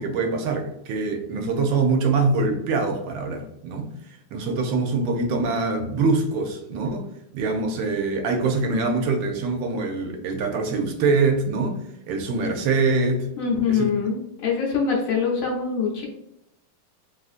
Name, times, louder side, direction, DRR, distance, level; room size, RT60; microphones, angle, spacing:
voice 1, 0.0-3.9 4.3-7.1 7.3-11.8 12.1-13.3 13.7-13.9, right 3 dB, 75° right, 4 dB, 1.2 m, -24 dB
voice 2, 13.4-16.1, left 5 dB, 85° left, -2 dB, 0.7 m, -24 dB
3.3 x 2.5 x 2.4 m, 0.81 s
omnidirectional pair, 2.3 m